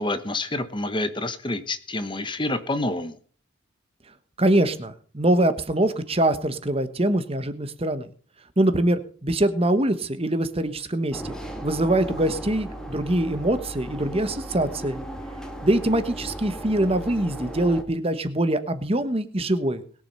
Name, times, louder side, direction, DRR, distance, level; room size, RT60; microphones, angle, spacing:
voice 1, 0.0-3.2, left 2 dB, 20° left, 11 dB, 1.1 m, -28 dB
voice 2, 4.4-8.1 8.6-15.0 15.6-19.8, right 1 dB, 25° right, 11 dB, 1.2 m, -23 dB
sound 1, 11.1-17.8, right 1 dB, 5° left, 2.0 m, -36 dB
21.0 x 7.4 x 5.6 m, 0.43 s
head